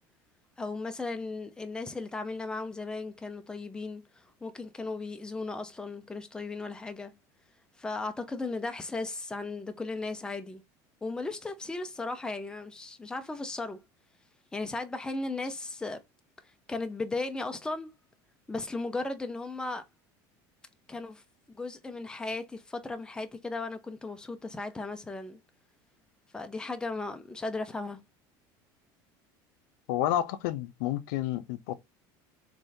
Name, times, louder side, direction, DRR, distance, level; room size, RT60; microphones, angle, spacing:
voice 1, 0.6-7.2 7.8-10.6 11.0-13.8 14.5-16.0 16.4-17.9 18.5-19.8 20.9-21.2 21.5-25.4 26.3-28.0, left 3 dB, 10° left, 0.5 m, -36 dB
voice 2, 29.9-31.7, left 12 dB, 85° left, 0.5 m, -30 dB
3.5 x 3.2 x 2.6 m
cardioid pair, 140°, 10 cm